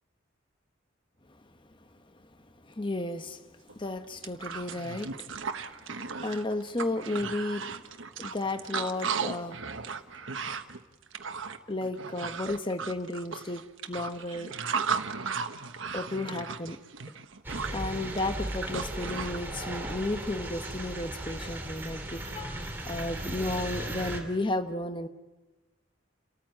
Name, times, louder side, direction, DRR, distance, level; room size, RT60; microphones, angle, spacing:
voice 1, 2.6-5.3 6.2-7.7 8.2-9.6 11.7-14.5 15.6-16.8 17.7-25.1, left 2 dB, 25° left, 1.1 m, -33 dB
sound 1, 3.7-3.8 4.1-19.4, right 5 dB, 75° right, 1.3 m, -36 dB
sound 2, 17.4-24.2, right 1 dB, 10° right, 3.1 m, -37 dB
30.0 x 14.0 x 9.5 m
head